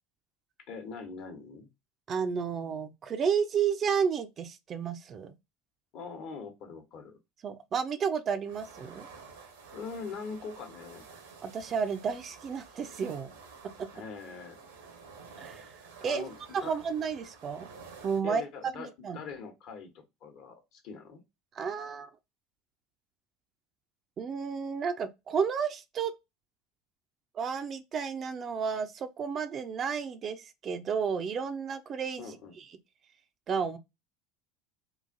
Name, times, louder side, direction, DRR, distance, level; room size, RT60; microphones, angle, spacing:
voice 1, 0.7-1.7 5.9-7.2 9.7-11.1 13.9-14.6 16.0-16.8 18.2-21.2 32.2-32.5, left 5 dB, 50° left, 1.0 m, -42 dB
voice 2, 2.1-5.3 7.4-9.1 11.4-13.3 15.4-15.7 16.0-16.2 16.5-17.7 18.0-18.4 18.8-19.2 21.5-22.1 24.2-26.1 27.3-32.6 33.5-33.8, right 6 dB, 35° right, 0.4 m, -32 dB
sound 1, 8.5-18.2, right 5 dB, 75° right, 0.9 m, -51 dB
3.8 x 2.5 x 2.5 m
figure-of-eight pair, 70°, 0 cm